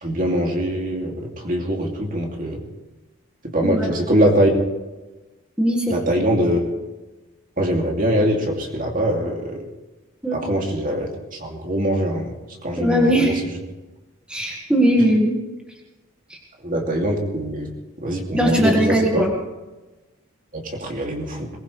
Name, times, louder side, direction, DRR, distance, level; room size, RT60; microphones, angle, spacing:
voice 1, 0.0-2.6 3.5-4.5 5.9-6.7 7.6-9.6 10.3-11.1 11.4-12.3 12.6-13.3 16.6-17.7 18.0-19.2 20.5-21.5, right 1 dB, 40° right, 1 dB, 2.6 m, -22 dB
voice 2, 5.6-6.0 10.2-10.4 12.8-13.3 14.3-15.3 16.3-16.4 18.3-19.3, equal, 5° right, -1 dB, 1.7 m, -19 dB
22.0 x 20.0 x 3.3 m, 1.1 s
head